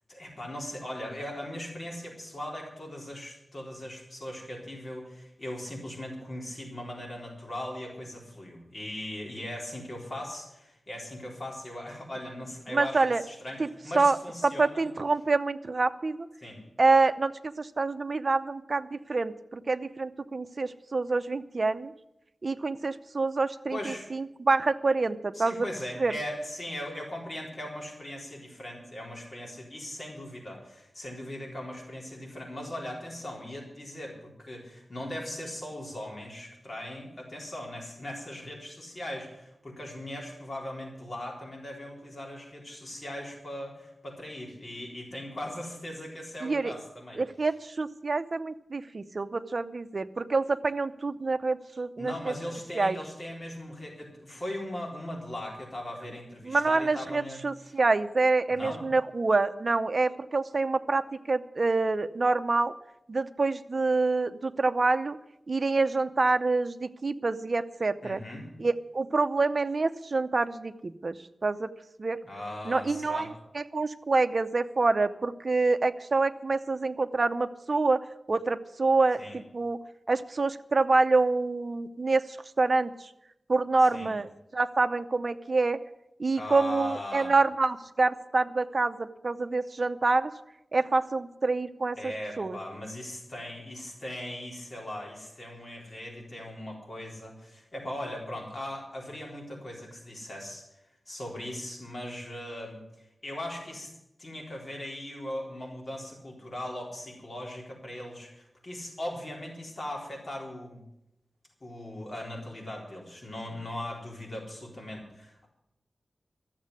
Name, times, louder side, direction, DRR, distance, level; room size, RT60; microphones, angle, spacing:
voice 1, 0.1-14.9 16.4-16.6 23.7-24.1 25.3-47.2 52.0-57.8 58.5-58.8 68.0-68.5 72.2-73.3 79.2-79.4 83.8-84.1 86.3-87.3 92.0-100.7 101.1-102.8 103.2-110.8 111.6-115.5, left 1 dB, 40° left, -1 dB, 4.0 m, -39 dB
voice 2, 12.7-13.2 14.0-14.2 14.4-16.3 16.8-17.3 17.6-21.9 22.4-25.7 26.0-26.1 46.4-46.7 47.2-52.1 52.8-53.0 56.5-62.7 63.1-65.2 65.5-68.2 68.6-71.1 71.4-71.7 72.0-72.2 72.7-73.3 73.5-79.8 80.1-82.9 83.5-85.8 86.2-90.3 90.7-92.0 92.4-92.6, right 3 dB, 50° right, 9 dB, 0.7 m, -26 dB
13.5 x 7.5 x 9.6 m, 0.86 s
wide cardioid pair, 105°, 0 cm